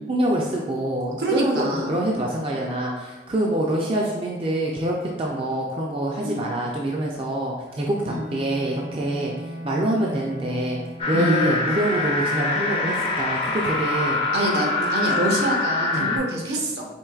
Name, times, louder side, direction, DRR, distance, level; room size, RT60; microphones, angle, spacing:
voice 1, 0.1-14.2 15.8-16.2, right 1 dB, 30° right, -2 dB, 0.4 m, -26 dB
voice 2, 1.2-1.9 3.5-3.6 6.2-6.4 8.0-8.3 11.1-11.4 14.3-16.8, right 1 dB, 70° right, 0 dB, 0.8 m, -25 dB
Bowed string instrument, 7.7-12.0, equal, 85° right, 1.5 m, -39 dB
sound 1, 11.0-16.2, left 3 dB, 30° left, 0.5 m, -24 dB
4.5 x 3.0 x 2.3 m, 1.3 s
head